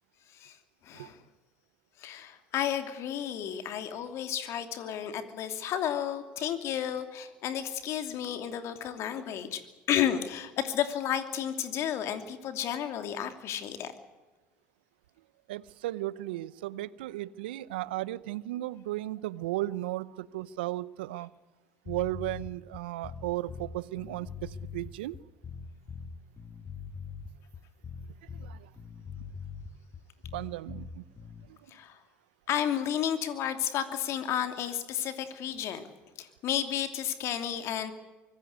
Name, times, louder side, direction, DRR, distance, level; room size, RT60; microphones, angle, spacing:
voice 1, 0.8-1.2 2.0-9.6 9.9-13.9 31.7-32.0 32.5-35.9 36.2-37.9, left 10 dB, 60° left, 8 dB, 2.8 m, -32 dB
voice 2, 15.5-21.3 21.9-25.2 28.4-28.7 30.3-31.0 31.5-31.6, right 16 dB, 80° right, 20 dB, 0.8 m, -35 dB
sound 1, 21.9-31.5, left 5 dB, 40° left, 2.0 m, -42 dB
24.5 x 16.5 x 9.5 m, 1.2 s
hypercardioid pair, 70°, 5 cm